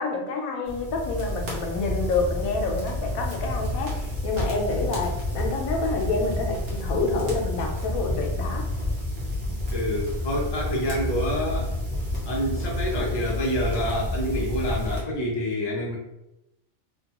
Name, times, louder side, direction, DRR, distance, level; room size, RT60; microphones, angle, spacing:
voice 1, 0.0-3.9 4.2-8.7, left 3 dB, 80° left, 2 dB, 1.0 m, -28 dB
sound 1, 0.7-15.0, left 1 dB, 50° right, 1.0 m, -29 dB
voice 2, 9.7-11.8 12.2-16.0, equal, 35° left, -4 dB, 0.4 m, -27 dB
2.9 x 2.2 x 2.8 m, 0.90 s
omnidirectional pair, 1.5 m